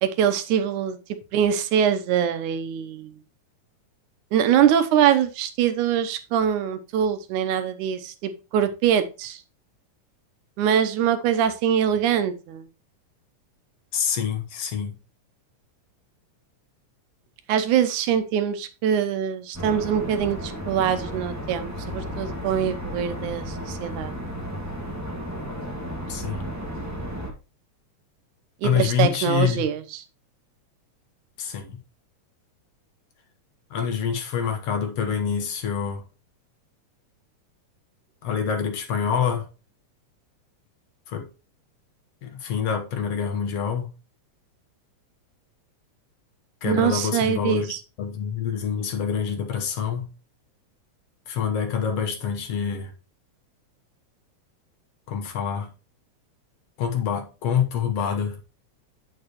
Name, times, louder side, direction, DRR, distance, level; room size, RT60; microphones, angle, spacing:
voice 1, 0.0-1.0 1.3-3.1 4.3-9.4 10.6-12.7 17.5-24.1 28.6-30.0 46.6-47.8, right 9 dB, 90° right, 2.3 m, -23 dB
voice 2, 13.9-15.0 26.1-26.5 28.6-29.7 31.4-31.8 33.7-36.0 38.2-39.5 41.1-41.3 42.2-43.9 46.6-50.1 51.3-52.9 55.1-55.7 56.8-58.4, left 7 dB, 65° left, 2.0 m, -26 dB
sound 1, 19.5-27.3, equal, 5° right, 1.4 m, -33 dB
8.9 x 6.7 x 3.0 m
omnidirectional pair, 3.4 m